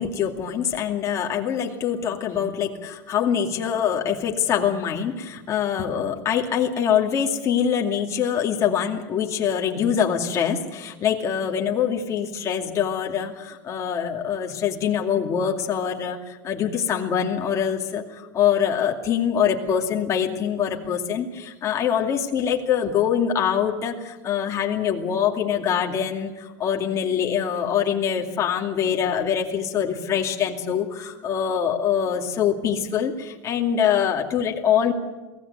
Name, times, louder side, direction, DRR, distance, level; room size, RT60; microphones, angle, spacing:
voice 1, 0.0-34.9, left 8 dB, 30° left, 1 dB, 2.5 m, -24 dB
23.0 x 16.5 x 9.6 m, 1.2 s
supercardioid pair, 155°, 11 cm